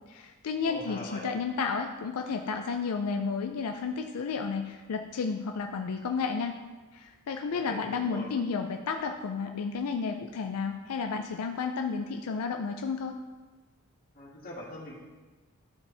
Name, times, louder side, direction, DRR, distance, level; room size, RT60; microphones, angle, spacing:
voice 1, 0.1-6.6 6.9-13.2, left 5 dB, 85° left, 4 dB, 0.4 m, -32 dB
voice 2, 0.7-1.2 7.5-8.3 14.1-14.9, left 1 dB, 40° left, -4 dB, 1.9 m, -41 dB
12.5 x 4.4 x 3.3 m, 1.3 s
head